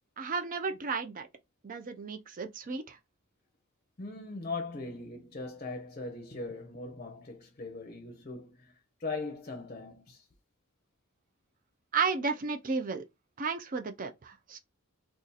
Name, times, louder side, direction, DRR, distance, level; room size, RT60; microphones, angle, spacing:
voice 1, 0.2-1.3 1.6-3.0 11.9-13.0 13.4-14.6, right 5 dB, 40° right, 0.5 m, -33 dB
voice 2, 4.0-8.7 9.0-10.2, left 3 dB, 35° left, 0.6 m, -40 dB
2.7 x 2.5 x 3.9 m
head